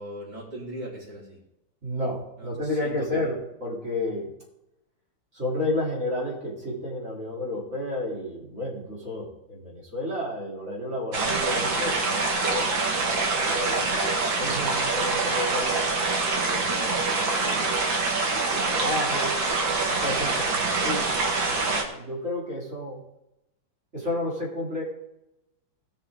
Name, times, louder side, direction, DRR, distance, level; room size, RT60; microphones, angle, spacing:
voice 1, 0.0-1.4 2.4-2.5 2.8-3.3 13.7-13.9, right 1 dB, 60° right, -6 dB, 4.8 m, -38 dB
voice 2, 1.8-4.3 5.3-14.0 14.4-16.1 16.4-17.8 18.5-19.4 20.0-21.1 21.5-23.0 23.9-24.8, left 1 dB, 35° right, -4 dB, 3.5 m, -32 dB
sound 1, 11.1-21.8, right 3 dB, 80° right, 2.3 m, -25 dB
18.0 x 7.0 x 3.7 m, 0.88 s
omnidirectional pair, 2.1 m